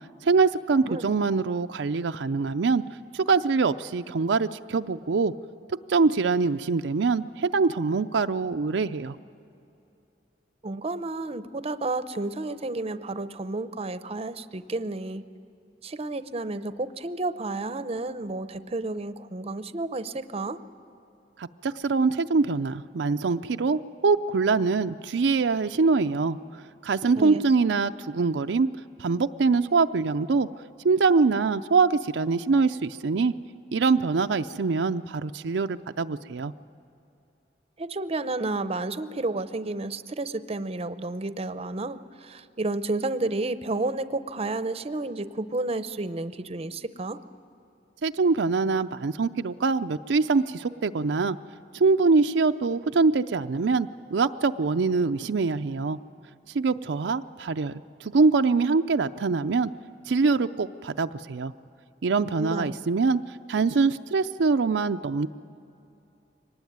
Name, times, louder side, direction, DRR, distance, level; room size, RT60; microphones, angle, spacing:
voice 1, 0.2-2.8 3.1-5.3 5.9-9.2 21.4-26.4 26.8-28.7 29.0-30.5 30.8-33.3 33.7-36.5 48.0-51.4 51.7-56.0 56.5-59.7 60.1-61.5 62.0-63.2 63.5-65.3, right 4 dB, 80° right, 8 dB, 0.5 m, -24 dB
voice 2, 10.6-15.2 15.8-20.6 27.2-27.4 37.8-47.2 62.4-62.7, right 2 dB, 35° right, 13 dB, 0.7 m, -31 dB
23.5 x 19.5 x 9.3 m, 2.8 s
head